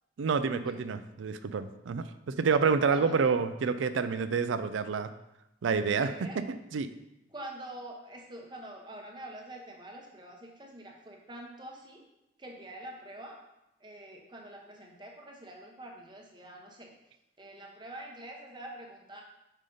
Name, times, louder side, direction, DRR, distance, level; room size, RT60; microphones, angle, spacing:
voice 1, 0.2-5.1 5.6-6.3 6.7-6.9, right 5 dB, 85° right, 11 dB, 0.4 m, -28 dB
voice 2, 2.9-3.2 6.0-6.4 7.3-12.0 12.4-13.4 13.8-16.9 17.4-19.2, right 1 dB, 25° right, 1 dB, 0.9 m, -46 dB
5.5 x 5.0 x 3.8 m, 0.89 s
head